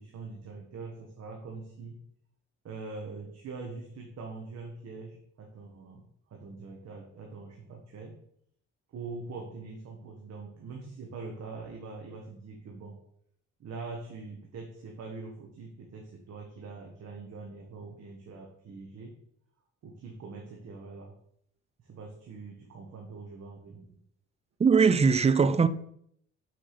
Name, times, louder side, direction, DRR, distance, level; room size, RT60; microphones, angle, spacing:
voice 1, 0.0-2.0 2.6-6.0 6.3-8.2 8.9-13.0 13.6-19.2 19.8-21.2 21.8-24.0, right 4 dB, 55° right, 1.4 m, -43 dB
voice 2, 24.6-25.7, right 5 dB, 20° right, 0.4 m, -21 dB
6.0 x 4.9 x 4.9 m
cardioid pair, 90°, 30 cm